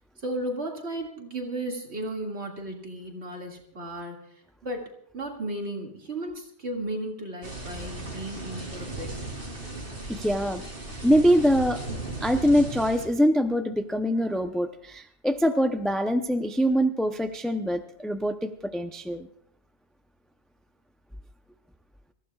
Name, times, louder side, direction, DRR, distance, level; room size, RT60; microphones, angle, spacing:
voice 1, 0.2-4.3 4.6-9.1, right 1 dB, 75° right, 0 dB, 2.6 m, -34 dB
sound 1, 7.4-13.1, right 2 dB, 55° right, 3.4 m, -36 dB
voice 2, 10.1-10.6 11.0-11.8 12.2-19.3, equal, ahead, 6 dB, 0.5 m, -24 dB
26.5 x 15.0 x 2.4 m, 0.69 s
omnidirectional pair, 1.1 m